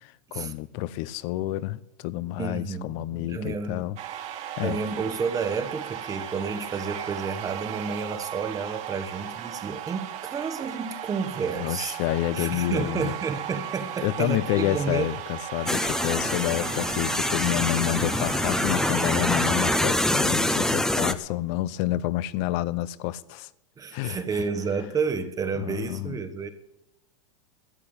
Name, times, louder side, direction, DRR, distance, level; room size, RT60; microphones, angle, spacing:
voice 1, 0.3-4.0 4.6-4.8 11.5-13.1 14.0-23.5 23.9-24.4 25.5-26.2, left 15 dB, 50° left, 0.8 m, -29 dB
voice 2, 2.4-3.8 4.6-12.0 12.3-15.1 23.8-26.5, right 5 dB, 20° right, 1.2 m, -30 dB
sound 1, 4.0-19.8, right 11 dB, 40° right, 1.9 m, -36 dB
sound 2, 15.7-21.1, left 1 dB, 5° left, 0.8 m, -25 dB
13.0 x 8.8 x 8.8 m
hypercardioid pair, 120°, 17 cm